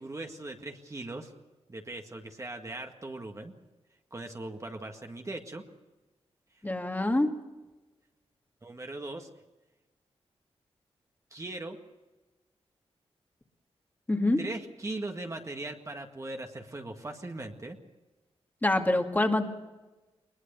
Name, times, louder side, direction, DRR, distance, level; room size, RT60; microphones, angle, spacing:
voice 1, 0.0-1.3 1.7-3.5 4.1-5.6 8.6-9.3 11.3-11.8 14.4-17.8, right 2 dB, 30° right, 3 dB, 1.9 m, -39 dB
voice 2, 6.6-7.3 14.1-14.4 18.6-19.5, left 2 dB, 15° left, 3 dB, 2.2 m, -25 dB
21.5 x 21.0 x 6.9 m, 1.1 s
cardioid pair, 85°, 11 cm